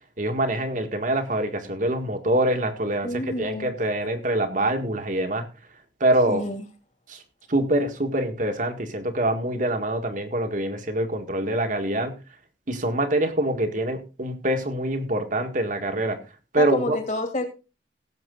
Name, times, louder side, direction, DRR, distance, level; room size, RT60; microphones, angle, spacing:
voice 1, 0.2-5.5 6.0-6.4 7.1-7.2 7.5-12.2 12.7-16.2 16.5-17.0, right 1 dB, 45° right, 6 dB, 1.8 m, -25 dB
voice 2, 3.0-3.7 6.3-6.6 16.6-17.5, left 2 dB, 45° left, 6 dB, 2.9 m, -28 dB
17.0 x 7.7 x 3.9 m, 0.31 s
head